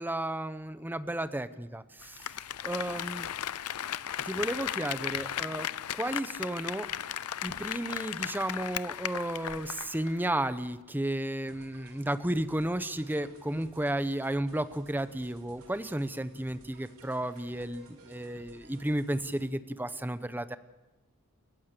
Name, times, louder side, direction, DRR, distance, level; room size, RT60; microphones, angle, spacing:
voice 1, 0.0-2.3 2.6-3.3 4.2-5.7 5.9-6.9 7.4-20.6, right 1 dB, 10° right, 12 dB, 0.8 m, -33 dB
Applause, 2.0-10.2 10.5-10.6, left 10 dB, 90° left, 0.6 m, -36 dB
sound 1, 11.5-19.5, right 2 dB, 80° right, 3.5 m, -57 dB
29.0 x 15.0 x 6.8 m, 1.1 s
head